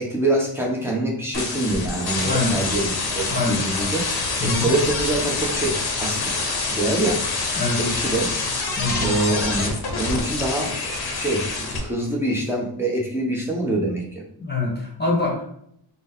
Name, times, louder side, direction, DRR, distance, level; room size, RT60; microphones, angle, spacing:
voice 1, 0.0-4.0 4.4-6.3 6.7-7.2 7.8-8.3 9.0-10.7 11.2-14.2, right 2 dB, 5° right, -3 dB, 0.9 m, -25 dB
sound 1, 1.3-11.8, left 3 dB, 55° left, 0.8 m, -26 dB
voice 2, 2.2-2.6 3.3-3.6 4.4-4.7 7.6-7.8 8.8-9.1 14.4-15.5, left 2 dB, 20° left, -2 dB, 1.2 m, -24 dB
4.0 x 2.2 x 3.6 m, 0.71 s
wide cardioid pair, 125°, 46 cm